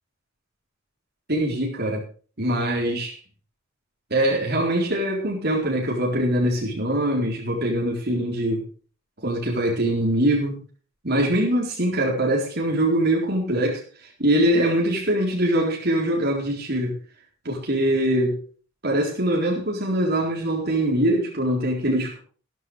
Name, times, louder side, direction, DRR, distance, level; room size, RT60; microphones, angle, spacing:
voice 1, 1.3-2.0 2.4-3.2 4.1-8.6 9.2-10.6 11.0-17.0 17.4-18.4 18.8-22.2, right 1 dB, 55° right, -1 dB, 4.1 m, -23 dB
15.0 x 14.0 x 3.5 m, 0.38 s
head